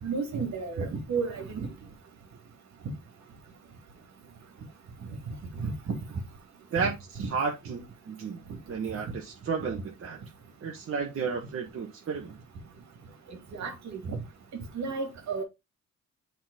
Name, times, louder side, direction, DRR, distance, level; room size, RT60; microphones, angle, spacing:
voice 1, 0.0-1.6 5.6-6.0 7.2-7.3 9.7-9.8 13.5-14.2 14.7-15.4, right 5 dB, 65° right, 2.5 m, -32 dB
voice 2, 6.7-8.4 8.7-10.2 10.6-12.3, right 5 dB, 45° right, 1.5 m, -32 dB
7.7 x 4.1 x 4.0 m
cardioid pair, 90°, 30 cm